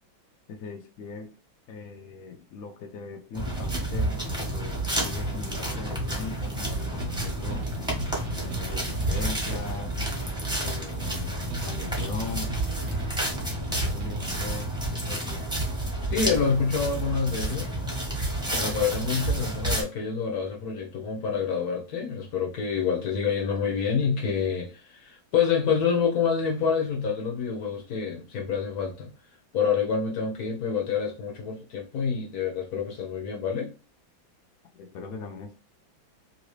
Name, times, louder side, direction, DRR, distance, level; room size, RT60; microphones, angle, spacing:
voice 1, 0.5-1.3 1.7-7.6 8.4-9.9 10.6-11.3 11.6-12.5 13.7-14.7 15.0-15.5 34.7-35.6, left 4 dB, 80° left, 0.7 m, -39 dB
sound 1, 3.3-19.8, right 1 dB, 5° right, 0.5 m, -30 dB
sound 2, 5.1-5.4 5.7-6.7 7.1-7.4 7.7-9.4 9.7-10.7 11.1-11.4 11.7-13.1, left 1 dB, 35° left, 1.1 m, -39 dB
sound 3, 7.0-14.9, right 2 dB, 75° right, 1.1 m, -40 dB
voice 2, 16.1-17.8 18.5-29.1 29.5-33.7, left 6 dB, 60° left, 1.1 m, -27 dB
3.1 x 2.7 x 3.1 m
omnidirectional pair, 2.2 m